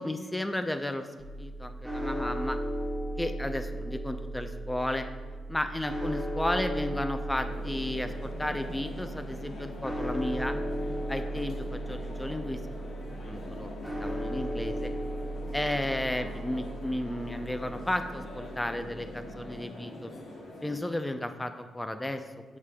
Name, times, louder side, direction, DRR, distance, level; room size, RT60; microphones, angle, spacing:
voice 1, 0.0-2.6 3.2-5.1 5.5-10.6 11.1-12.6 13.1-14.9 15.5-20.1 20.6-22.6, left 1 dB, 15° left, 8 dB, 0.5 m, -33 dB
sound 1, 1.2-19.6, right 1 dB, 5° right, 1.7 m, -36 dB
sound 2, 7.4-20.8, left 1 dB, 65° left, 1.3 m, -44 dB
8.1 x 5.1 x 2.3 m, 1.4 s
hypercardioid pair, 45°, 0 cm